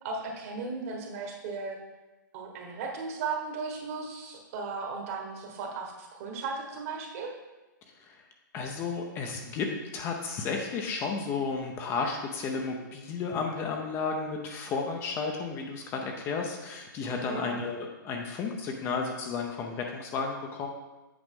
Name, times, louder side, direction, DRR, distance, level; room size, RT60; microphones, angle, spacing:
voice 1, 0.0-1.8 2.3-7.3 17.3-17.6, right 4 dB, 40° right, 2 dB, 1.3 m, -36 dB
voice 2, 8.5-20.7, left 4 dB, 20° left, 2 dB, 0.6 m, -33 dB
8.0 x 4.8 x 3.6 m, 1.1 s
hypercardioid pair, 145°, 11 cm